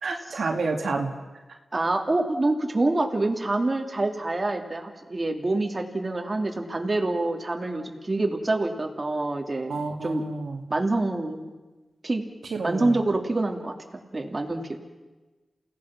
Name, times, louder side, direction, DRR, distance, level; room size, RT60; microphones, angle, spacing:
voice 1, 0.0-1.1 9.7-10.6 12.5-13.0, right 3 dB, 85° right, 1 dB, 2.3 m, -29 dB
voice 2, 1.7-10.2 10.7-11.5 12.0-12.2 12.6-13.7 14.1-14.8, right 2 dB, 35° right, 2 dB, 2.7 m, -26 dB
29.0 x 17.5 x 6.0 m, 1.2 s
cardioid pair, 70°, 0 cm